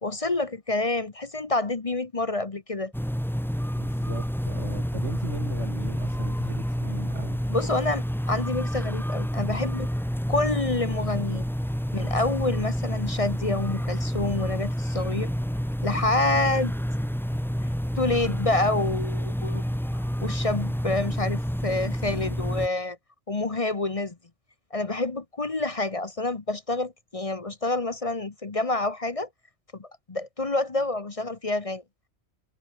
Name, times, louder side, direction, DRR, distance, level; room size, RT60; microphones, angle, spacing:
voice 1, 0.0-2.9 7.5-9.9 10.3-11.4 11.9-15.3 15.8-16.7 18.0-19.6 19.9-23.0 23.3-24.2 24.7-29.3 29.8-31.8, left 2 dB, 30° left, 1.1 m, -28 dB
sound 1, 2.9-22.7, equal, ahead, 1.9 m, -29 dB
voice 2, 3.8-7.4, right 3 dB, 85° right, 3.2 m, -39 dB
omnidirectional pair, 1.2 m